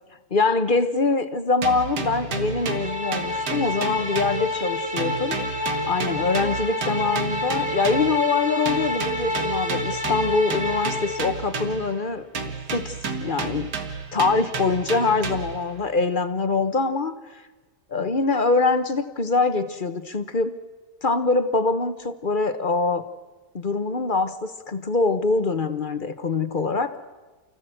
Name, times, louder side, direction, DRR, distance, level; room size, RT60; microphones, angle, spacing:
voice 1, 0.3-5.4 5.9-12.3 12.7-13.0 13.2-13.7 14.1-17.4 17.9-20.6 21.0-23.0 23.5-26.9, left 3 dB, 35° left, 11 dB, 0.9 m, -24 dB
sound 1, 1.6-4.7 5.0-8.2 8.7-12.0 12.3-15.7, right 4 dB, 75° right, 2.2 m, -32 dB
sound 2, 2.5-11.4, left 2 dB, 5° right, 2.1 m, -29 dB
29.5 x 15.5 x 7.7 m, 1.3 s
omnidirectional pair, 1.8 m